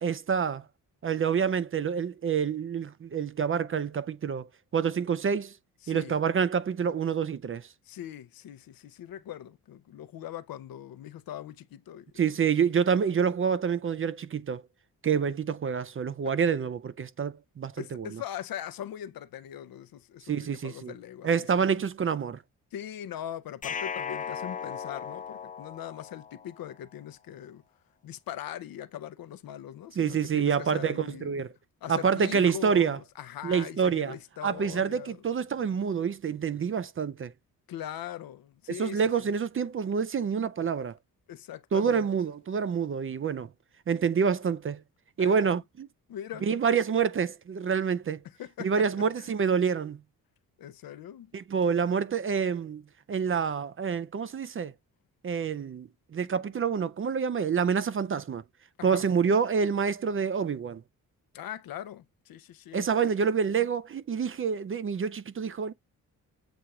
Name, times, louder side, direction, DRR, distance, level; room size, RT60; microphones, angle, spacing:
voice 1, 0.0-0.6 1.0-4.5 4.7-5.5 5.9-7.7 12.2-14.6 15.0-18.2 20.3-20.9 21.2-22.4 30.0-31.5 31.9-33.0 33.4-34.2 34.4-37.3 38.7-41.0 41.7-43.5 43.9-44.8 45.2-45.9 46.4-48.2 48.6-50.0 51.3-52.8 53.1-54.7 55.2-58.4 58.8-60.8 62.7-65.7, right 6 dB, 35° right, 0.5 m, -27 dB
voice 2, 5.8-6.1 7.9-12.2 17.8-21.8 22.7-27.6 28.0-31.3 31.8-35.2 37.7-39.3 41.3-42.1 45.2-45.6 46.1-46.4 48.4-49.3 50.6-51.3 58.8-59.0 61.3-62.9, left 11 dB, 65° left, 0.6 m, -41 dB
sound 1, 23.6-26.7, left 7 dB, 25° left, 0.3 m, -37 dB
7.9 x 2.9 x 2.3 m
supercardioid pair, 60°, 37 cm